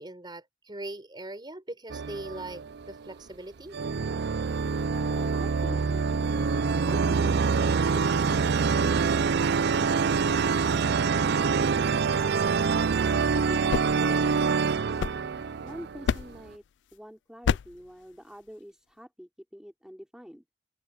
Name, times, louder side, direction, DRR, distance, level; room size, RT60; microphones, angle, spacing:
voice 1, 0.0-3.8, right 1 dB, 25° right, 5.1 m, -40 dB
sound 1, 1.9-3.1 3.7-16.4, right 5 dB, 60° right, 0.5 m, -25 dB
voice 2, 4.8-6.3 13.0-15.0 15.6-16.6 16.9-20.5, equal, 5° right, 4.4 m, -45 dB
sound 2, 13.4-15.6 16.1-16.6 17.4-17.9, left 6 dB, 70° left, 0.4 m, -31 dB
open air
head